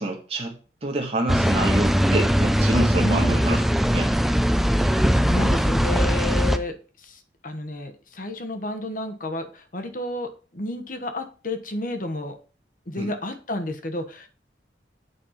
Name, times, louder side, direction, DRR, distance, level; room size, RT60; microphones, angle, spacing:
voice 1, 0.0-3.6 3.9-4.1 13.0-13.1, right 1 dB, 35° right, 0 dB, 1.4 m, -27 dB
sound 1, 1.3-6.6, equal, ahead, 0.4 m, -20 dB
voice 2, 3.0-3.4 4.8-12.4 12.9-14.3, left 1 dB, 50° left, 7 dB, 1.2 m, -31 dB
8.4 x 4.3 x 5.8 m, 0.37 s
head